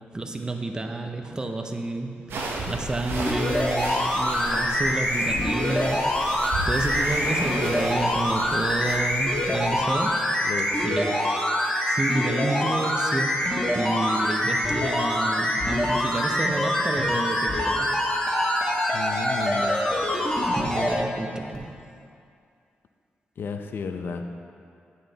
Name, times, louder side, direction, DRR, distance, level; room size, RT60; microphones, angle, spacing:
voice 1, 0.1-10.5 10.8-11.1 11.9-17.9 20.6-21.8, right 2 dB, 20° right, 4 dB, 0.5 m, -30 dB
sound 1, 2.3-9.9, right 2 dB, 80° right, 0.8 m, -34 dB
sound 2, 3.1-20.9 21.5-21.6, left 1 dB, 20° left, 1.3 m, -25 dB
voice 2, 10.4-11.0 18.9-19.8 23.4-24.2, left 5 dB, 65° left, 6 dB, 0.5 m, -33 dB
8.9 x 5.5 x 3.9 m, 2.4 s
wide cardioid pair, 130°, 4 cm